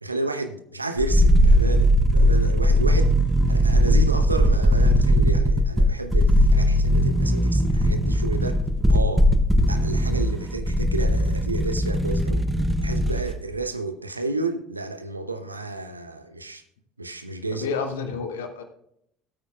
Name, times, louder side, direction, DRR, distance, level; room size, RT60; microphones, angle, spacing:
voice 1, 0.0-3.2 3.5-8.6 8.9-9.3 9.7-12.5 12.8-16.6 17.0-17.7, right 3 dB, 85° right, 0.8 m, -31 dB
sound 1, 1.0-13.4 13.6-13.7, equal, 10° right, 0.9 m, -19 dB
voice 2, 17.5-18.6, left 5 dB, 70° left, 1.5 m, -30 dB
16.5 x 8.8 x 2.4 m
figure-of-eight pair, 65°, 0 cm